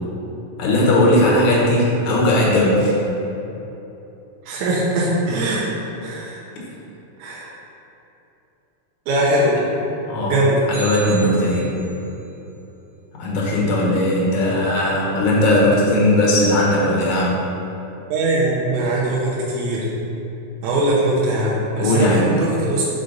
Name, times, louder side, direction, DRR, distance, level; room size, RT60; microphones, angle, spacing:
voice 1, 0.6-3.0 10.0-10.4 10.7-11.7 13.2-17.4 21.8-22.4, left 1 dB, 80° left, -5 dB, 2.5 m, -18 dB
voice 2, 4.5-5.7 6.0-6.4 7.2-7.5 9.1-9.6 10.3-10.6 18.1-19.9 20.6-22.8, right 1 dB, 80° right, -6 dB, 2.1 m, -21 dB
sound 1, 10.7-12.1, right 3 dB, 60° right, 1.9 m, -35 dB
6.7 x 3.9 x 3.9 m, 3.0 s
omnidirectional pair, 3.4 m